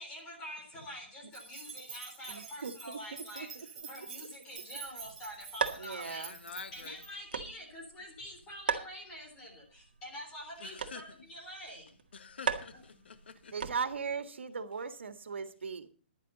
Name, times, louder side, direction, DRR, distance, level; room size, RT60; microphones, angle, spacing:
voice 1, 0.0-6.2 6.7-12.0 12.7-13.0, equal, 10° left, 3.9 m, -46 dB
sound 1, 1.3-7.1, right 6 dB, 5° right, 2.3 m, -48 dB
voice 2, 2.3-3.7 5.8-6.4 13.5-15.9, right 5 dB, 85° right, 1.9 m, -39 dB
sound 2, 4.8-14.2, right 6 dB, 55° right, 1.8 m, -40 dB
voice 3, 6.0-6.7 10.6-11.0 12.2-13.5, left 6 dB, 70° left, 1.7 m, -47 dB
14.0 x 11.0 x 4.1 m
hypercardioid pair, 175°, 6 cm